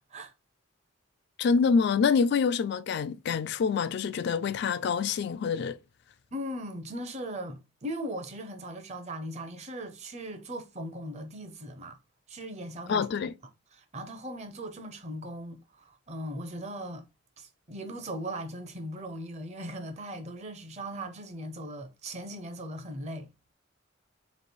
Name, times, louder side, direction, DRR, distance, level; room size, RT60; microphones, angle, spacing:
voice 1, 1.4-5.8 12.9-13.3, left 5 dB, 60° left, 0.3 m, -26 dB
voice 2, 6.3-12.0 12.3-13.1 13.7-17.1 17.4-23.3, equal, 35° right, 0.6 m, -39 dB
3.1 x 2.9 x 4.2 m
head